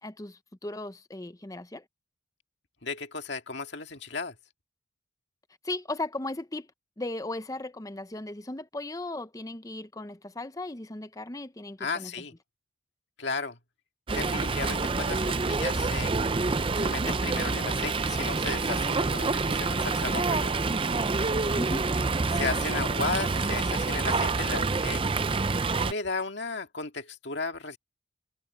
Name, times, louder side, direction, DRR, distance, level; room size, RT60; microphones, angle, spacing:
voice 1, 0.0-1.8 5.6-6.7 7.0-12.1 21.5-21.9, left 2 dB, 15° left, 0.6 m, -36 dB
voice 2, 2.8-4.4 11.8-12.3 13.2-13.6 14.1-16.2 16.8-20.5 22.3-25.1 25.8-27.8, left 4 dB, 60° left, 2.0 m, -34 dB
Fowl, 14.1-25.9, right 3 dB, 25° right, 0.5 m, -27 dB
head